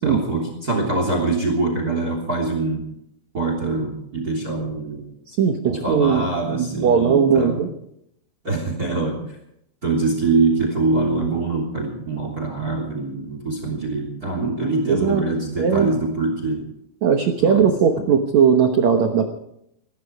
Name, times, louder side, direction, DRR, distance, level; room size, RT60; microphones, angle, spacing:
voice 1, 0.0-2.8 3.3-5.0 5.6-7.6 8.4-9.2 9.8-16.6 17.4-17.6, right 3 dB, 25° right, 3 dB, 3.1 m, -24 dB
voice 2, 5.3-7.7 14.9-15.2 15.6-15.9 17.0-19.3, right 7 dB, 85° right, 5 dB, 1.5 m, -18 dB
20.0 x 15.0 x 4.8 m, 0.75 s
omnidirectional pair, 5.1 m